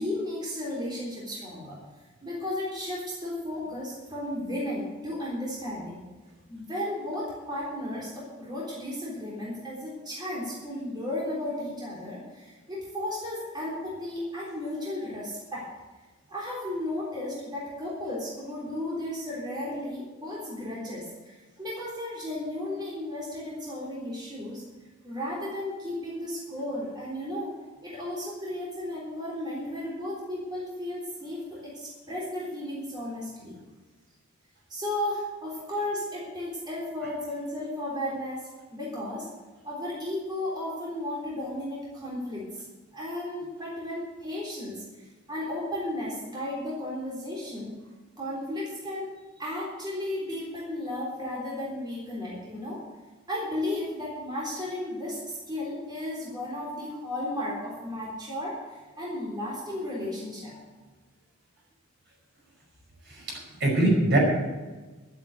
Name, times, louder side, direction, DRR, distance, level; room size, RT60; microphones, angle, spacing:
voice 1, 0.0-1.8 2.2-6.0 6.5-15.7 16.3-24.6 25.0-27.5 27.8-33.6 34.7-39.3 39.6-42.7 42.9-47.7 48.2-49.1 49.4-52.8 53.3-60.5, left 1 dB, 20° right, -6 dB, 3.6 m, -34 dB
voice 2, 63.1-64.2, right 1 dB, 55° right, -1 dB, 5.5 m, -23 dB
12.5 x 8.6 x 8.2 m, 1.2 s
head